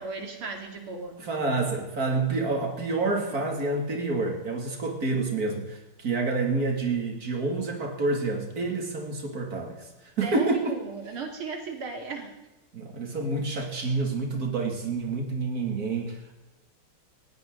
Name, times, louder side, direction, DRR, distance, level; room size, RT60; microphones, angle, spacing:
voice 1, 0.0-1.2 10.2-12.3, right 4 dB, 80° right, 3 dB, 3.5 m, -36 dB
voice 2, 1.2-10.8 12.7-16.3, right 3 dB, 45° right, 2 dB, 3.2 m, -28 dB
19.0 x 16.5 x 4.0 m, 1.1 s
omnidirectional pair, 2.3 m